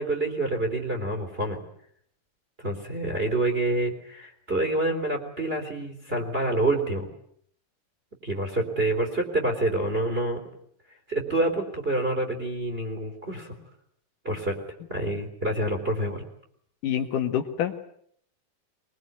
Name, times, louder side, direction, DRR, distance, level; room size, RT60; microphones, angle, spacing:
voice 1, 0.0-1.6 2.6-7.1 8.2-10.4 11.1-13.6 14.2-14.6 14.9-16.2, right 2 dB, 15° right, 4 dB, 3.6 m, -27 dB
voice 2, 16.8-17.8, left 9 dB, 70° left, 6 dB, 3.2 m, -27 dB
23.0 x 22.0 x 9.5 m, 0.66 s
omnidirectional pair, 3.9 m